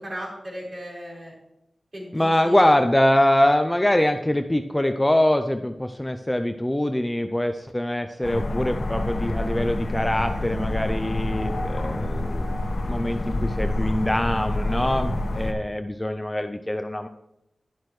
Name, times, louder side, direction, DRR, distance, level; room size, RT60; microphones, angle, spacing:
voice 1, 0.0-1.3 1.9-2.8 8.2-8.3, equal, 40° right, -4 dB, 4.6 m, -37 dB
voice 2, 2.1-12.5 12.9-17.1, left 1 dB, 10° left, 7 dB, 0.5 m, -23 dB
sound 1, 8.2-15.5, left 1 dB, 70° left, 1.1 m, -27 dB
11.0 x 11.0 x 3.2 m, 0.85 s
wide cardioid pair, 105°, 0 cm